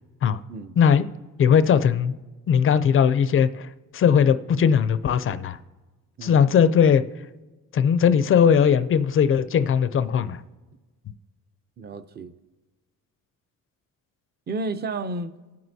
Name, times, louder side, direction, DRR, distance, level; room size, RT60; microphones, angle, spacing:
voice 1, 0.8-1.1 1.4-2.1 2.5-3.7 3.9-5.6 6.2-7.0 7.7-10.4, left 7 dB, 40° left, 0.4 m, -19 dB
voice 2, 6.2-6.5 11.8-12.3 14.5-15.3, right 3 dB, 30° right, 0.5 m, -32 dB
18.5 x 7.7 x 2.7 m
cardioid pair, 155°, 34 cm